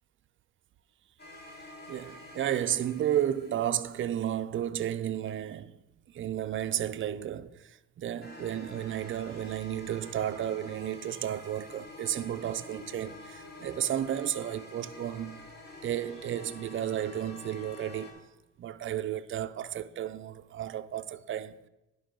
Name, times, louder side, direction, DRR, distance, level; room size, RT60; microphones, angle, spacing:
sound 1, 1.2-3.9 8.2-18.1, left 2 dB, 30° left, 2.4 m, -48 dB
voice 1, 1.9-5.7 6.1-15.5 15.8-18.2 18.6-21.6, right 11 dB, 45° right, 0.4 m, -33 dB
11.5 x 5.4 x 3.7 m
cardioid pair, 90°, 30 cm